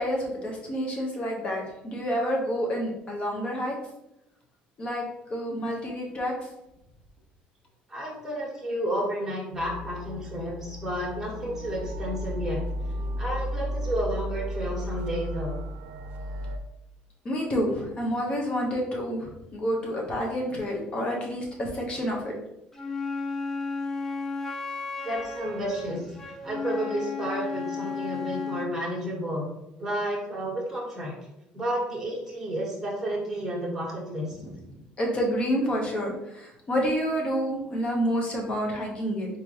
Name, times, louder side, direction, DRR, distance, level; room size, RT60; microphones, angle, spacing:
voice 1, 0.0-3.8 4.8-5.0 5.3-6.3 17.2-22.4 34.4-34.5 35.0-39.3, equal, 35° left, -1 dB, 1.2 m, -28 dB
voice 2, 7.9-12.6 13.2-15.6 25.0-26.1 26.4-29.5 29.8-31.1 31.5-34.4, right 1 dB, 10° right, -4 dB, 1.7 m, -31 dB
sound 1, 9.5-16.6, equal, 65° right, 0.5 m, -34 dB
Wind instrument woodwind instrument, 22.7-28.8, left 4 dB, 10° left, 0.6 m, -33 dB
4.2 x 3.7 x 3.1 m, 0.86 s
cardioid pair, 125°, 3 cm